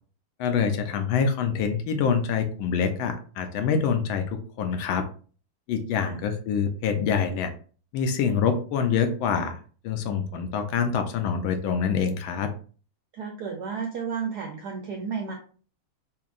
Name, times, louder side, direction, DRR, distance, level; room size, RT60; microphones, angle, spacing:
voice 1, 0.4-5.0 5.7-7.5 7.9-9.6 9.8-12.5, left 6 dB, 75° left, 7 dB, 1.3 m, -25 dB
voice 2, 13.1-15.3, right 6 dB, 75° right, 2 dB, 0.9 m, -32 dB
5.1 x 2.8 x 2.4 m, 0.40 s
omnidirectional pair, 2.4 m